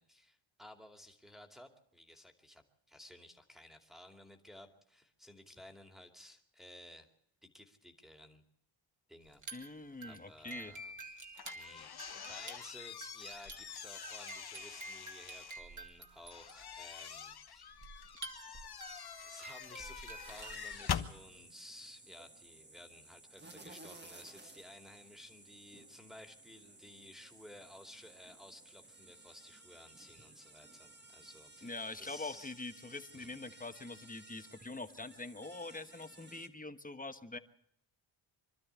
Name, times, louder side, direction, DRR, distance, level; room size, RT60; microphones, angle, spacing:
voice 1, 0.0-7.1 7.4-8.4 9.1-9.4 10.0-10.9 11.5-17.8 19.2-32.5 33.1-33.4, left 1 dB, ahead, 3 dB, 2.6 m, -55 dB
sound 1, 9.3-20.8, right 3 dB, 40° right, 2.6 m, -50 dB
voice 2, 9.5-10.7 31.6-37.4, left 3 dB, 15° left, 10 dB, 1.2 m, -44 dB
sound 2, 11.4-15.6 16.3-21.1, left 8 dB, 50° left, 1.2 m, -44 dB
sound 3, 20.2-36.5, right 2 dB, 20° right, 1.8 m, -57 dB
25.0 x 12.5 x 8.3 m, 0.72 s
cardioid pair, 85°, 48 cm